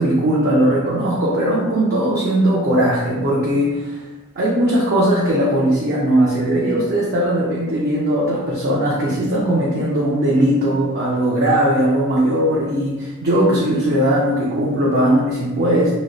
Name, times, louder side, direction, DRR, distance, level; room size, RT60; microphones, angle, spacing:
voice 1, 0.0-4.0 4.4-15.9, right 1 dB, 45° right, -6 dB, 0.5 m, -18 dB
2.7 x 2.1 x 3.9 m, 1.1 s
head